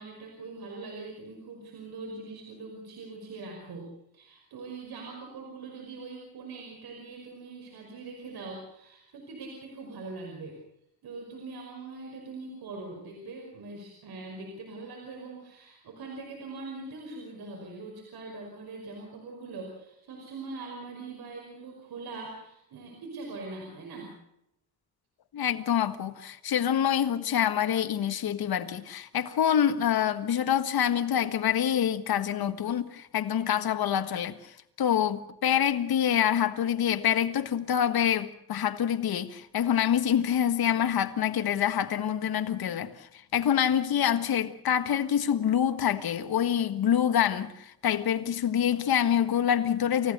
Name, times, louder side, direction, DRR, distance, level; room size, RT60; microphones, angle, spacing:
voice 1, 0.0-10.6 11.0-24.2, right 3 dB, 80° right, 5.6 m, -42 dB
voice 2, 25.3-34.3 34.8-50.1, left 9 dB, 75° left, 1.6 m, -26 dB
29.0 x 15.5 x 6.7 m
cardioid pair, 90°, 37 cm